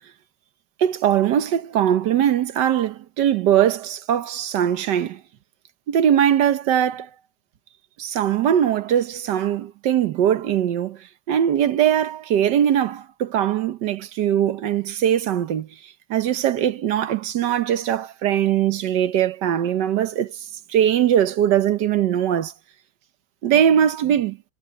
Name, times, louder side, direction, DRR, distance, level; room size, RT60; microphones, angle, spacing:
voice 1, 0.8-5.2 5.9-7.1 8.0-11.0 11.3-15.7 16.1-20.3 20.7-22.5 23.4-24.4, right 10 dB, 65° right, 1.4 m, -21 dB
omnidirectional pair, 2.2 m